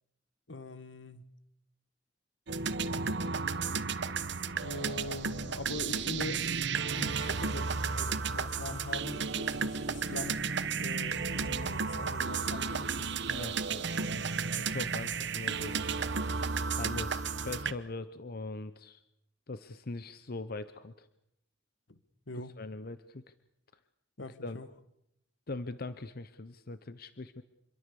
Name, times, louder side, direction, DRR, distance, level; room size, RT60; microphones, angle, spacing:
voice 1, 0.5-1.3 4.6-6.5 6.9-10.5 10.8-13.2 21.9-22.0 22.3-22.6 24.2-24.7, left 2 dB, 75° left, 1.6 m, -42 dB
sound 1, 2.5-17.7, right 5 dB, 65° right, 1.1 m, -33 dB
sound 2, 6.9-17.6, right 9 dB, 40° right, 1.6 m, -55 dB
voice 2, 13.2-16.0 16.8-19.0 19.5-21.1 22.6-23.2 24.4-24.6 25.5-27.4, left 3 dB, 55° left, 0.9 m, -41 dB
27.0 x 22.5 x 6.9 m
head